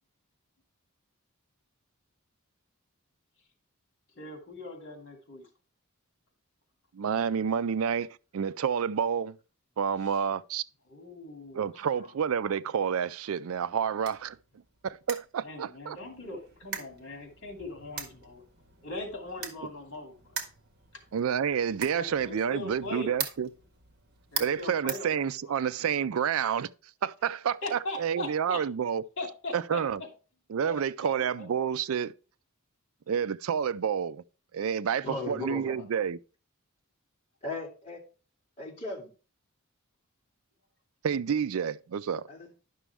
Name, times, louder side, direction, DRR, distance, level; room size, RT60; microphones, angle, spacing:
voice 1, 4.2-5.5 10.0-10.2 10.9-12.1 15.4-18.4 18.8-20.4 20.9-21.0 21.9-23.1 24.3-25.5 27.6-28.6 29.2-30.1 30.6-31.5, left 2 dB, 60° left, 2.7 m, -40 dB
voice 2, 6.9-8.1 8.3-9.4 9.8-10.6 11.5-14.4 14.8-16.0 21.1-23.5 24.4-26.7 27.0-29.0 29.5-30.0 30.5-32.1 33.1-34.2 34.5-36.2 41.0-42.3, right 7 dB, 70° right, 0.4 m, -29 dB
sound 1, 13.5-25.8, right 6 dB, 50° right, 1.6 m, -42 dB
voice 3, 35.0-35.9 37.4-38.0 38.6-39.1 42.3-42.6, left 2 dB, 30° left, 2.8 m, -37 dB
11.0 x 6.1 x 3.4 m
head